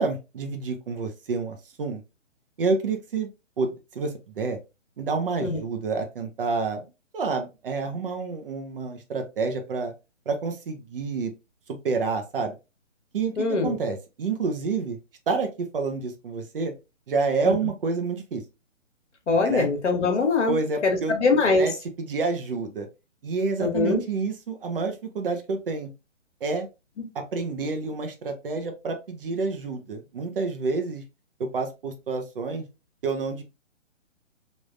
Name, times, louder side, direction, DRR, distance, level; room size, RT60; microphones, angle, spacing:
voice 1, 0.0-2.0 2.6-3.3 3.6-4.6 5.0-6.9 7.1-9.9 10.3-11.3 11.8-12.6 13.1-15.0 15.3-16.7 17.1-18.4 19.4-19.7 20.5-21.2 21.6-22.9 23.2-25.9 26.4-26.7 27.1-31.0 31.4-32.6 33.0-33.4, right 4 dB, 45° right, 5 dB, 0.6 m, -28 dB
voice 2, 13.4-13.7 19.3-20.5 20.8-21.7 23.6-24.0, left 4 dB, 65° left, 4 dB, 1.2 m, -22 dB
3.5 x 2.5 x 2.5 m, 0.27 s
figure-of-eight pair, 145°, 38 cm